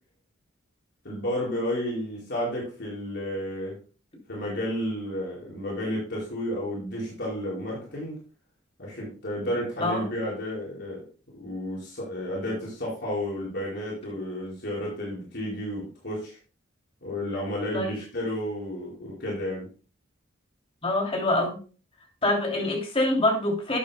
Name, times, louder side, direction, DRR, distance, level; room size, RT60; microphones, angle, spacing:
voice 1, 1.0-3.8 4.3-8.2 8.8-11.0 11.4-16.4 17.0-19.7, equal, 60° left, -5 dB, 4.5 m, -32 dB
voice 2, 20.8-21.6 22.2-23.8, left 1 dB, 30° left, 0 dB, 2.8 m, -25 dB
11.0 x 9.3 x 2.2 m, 0.36 s
head